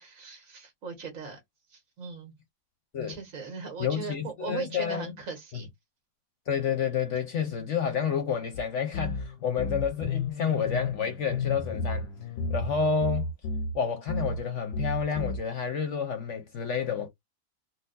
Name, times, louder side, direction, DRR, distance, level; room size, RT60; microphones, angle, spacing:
voice 1, 0.0-1.4 1.7-2.3 3.1-5.7, right 5 dB, 55° right, 1.6 m, -39 dB
voice 2, 3.8-5.1 6.5-12.1 12.5-13.3 13.7-17.1, left 6 dB, 60° left, 0.9 m, -29 dB
sound 1, 8.5-8.6 8.9-13.8 14.1-14.4 14.7-15.4, left 3 dB, 90° left, 1.2 m, -32 dB
3.9 x 2.3 x 2.5 m
omnidirectional pair, 1.7 m